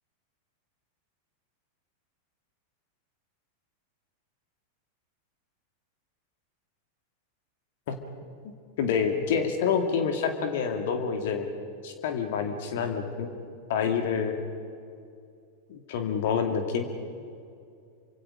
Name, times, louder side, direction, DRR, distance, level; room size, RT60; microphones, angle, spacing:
voice 1, 8.4-11.5 11.8-13.3 13.7-14.4 15.7-16.9, left 6 dB, 55° left, 6 dB, 2.3 m, -28 dB
28.5 x 26.0 x 5.2 m, 2.4 s
figure-of-eight pair, 90°, 0 cm